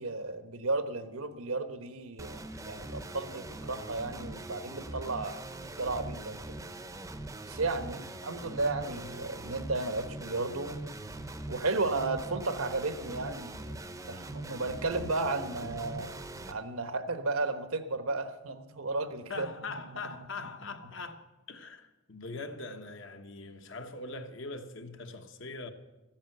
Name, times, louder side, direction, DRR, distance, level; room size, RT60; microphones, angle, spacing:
voice 1, 0.0-6.6 7.5-11.0 11.5-16.1 16.5-19.5 19.7-20.1, right 3 dB, 80° right, 1.2 m, -34 dB
sound 1, 2.2-16.5, right 2 dB, 15° right, 0.7 m, -42 dB
voice 2, 19.3-25.7, left 3 dB, 60° left, 1.2 m, -42 dB
14.0 x 10.5 x 7.9 m
head